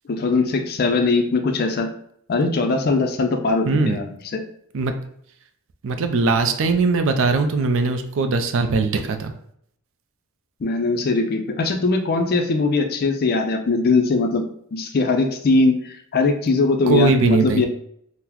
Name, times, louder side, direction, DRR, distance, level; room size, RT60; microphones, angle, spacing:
voice 1, 0.1-1.9 2.3-4.4 10.6-14.4 14.7-17.7, left 3 dB, 45° left, 5 dB, 0.4 m, -21 dB
voice 2, 3.7-4.0 4.7-4.9 5.8-9.3 16.9-17.7, right 3 dB, 60° right, 7 dB, 0.4 m, -20 dB
3.8 x 2.0 x 2.9 m, 0.69 s
head